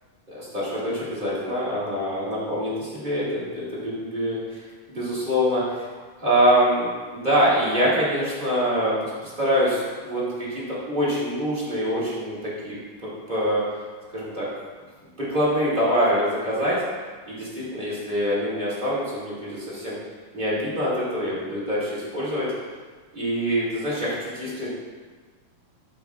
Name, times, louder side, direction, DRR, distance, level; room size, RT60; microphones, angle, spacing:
voice 1, 0.3-5.9 6.2-8.9 9.2-12.8 13.0-13.6 14.1-14.5 15.2-16.8 17.3-20.0 20.3-22.5 23.1-24.7, equal, 20° right, -8 dB, 1.4 m, -25 dB
13.5 x 5.8 x 2.4 m, 1.5 s
omnidirectional pair, 4.0 m